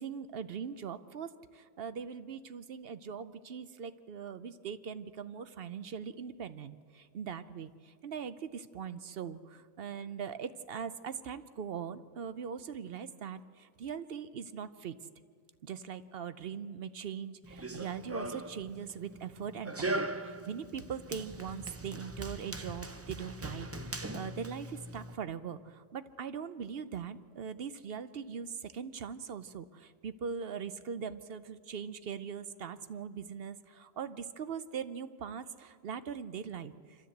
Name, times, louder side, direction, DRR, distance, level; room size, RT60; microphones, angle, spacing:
voice 1, 0.0-15.0 15.6-37.1, right 7 dB, 55° right, 13 dB, 0.7 m, -41 dB
Run, 17.4-25.1, right 2 dB, 25° right, 0.3 m, -40 dB
26.0 x 13.0 x 7.9 m, 2.1 s
omnidirectional pair, 1.4 m